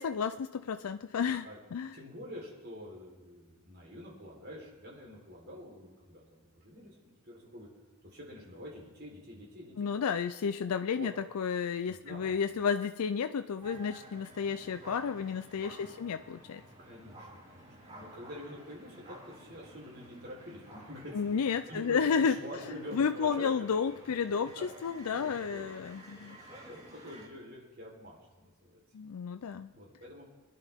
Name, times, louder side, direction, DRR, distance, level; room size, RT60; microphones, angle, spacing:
voice 1, 0.0-1.5 1.7-2.0 9.8-16.6 21.1-22.3 22.9-24.5 24.8-26.4 28.9-29.7, left 6 dB, 90° left, 9 dB, 0.4 m, -32 dB
voice 2, 1.9-7.7 8.0-9.9 10.9-11.1 11.9-12.4 15.8-16.2 16.8-21.1 21.5-23.5 24.4-24.7 25.1-25.7 26.7-28.8 29.7-30.3, equal, 50° right, -2 dB, 3.9 m, -47 dB
sound 1, 13.6-27.3, right 1 dB, 30° right, 2.3 m, -52 dB
22.0 x 11.0 x 3.6 m, 1.2 s
head